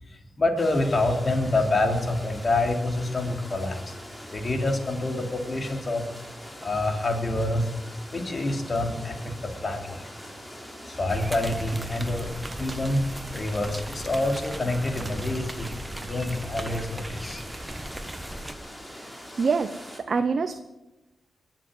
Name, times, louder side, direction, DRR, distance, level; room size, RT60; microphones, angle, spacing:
voice 1, 0.4-3.9 4.3-6.0 6.6-7.7 8.1-10.1 10.8-12.3 12.6-13.1 13.3-15.7 16.0-17.4, left 2 dB, 45° left, 3 dB, 3.0 m, -27 dB
sound 1, 0.6-20.0, equal, 10° left, 3.8 m, -43 dB
sound 2, 11.1-18.5, right 1 dB, 15° right, 1.4 m, -37 dB
voice 2, 19.4-20.6, right 5 dB, 60° right, 9 dB, 0.8 m, -26 dB
21.5 x 7.6 x 7.7 m, 1.1 s
cardioid pair, 55°, 0 cm